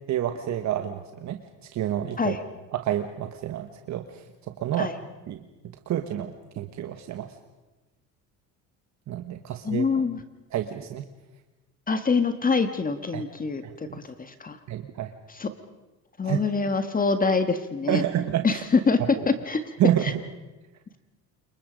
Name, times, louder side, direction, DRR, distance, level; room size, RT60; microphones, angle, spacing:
voice 1, 0.1-1.4 1.7-2.4 2.7-4.2 4.6-4.9 5.3-5.4 5.9-7.3 9.1-9.8 10.5-11.0 13.1-13.2 13.6-14.0 14.7-15.1 16.2-16.4 17.9-18.6 19.8-20.0, right 11 dB, 55° right, 7 dB, 1.4 m, -28 dB
voice 2, 9.6-10.2 11.9-14.6 15.3-15.5 16.2-18.0 18.4-19.7 20.0-20.1, left 4 dB, 25° left, 9 dB, 1.5 m, -25 dB
27.5 x 23.5 x 5.2 m, 1.1 s
supercardioid pair, 90°, 34 cm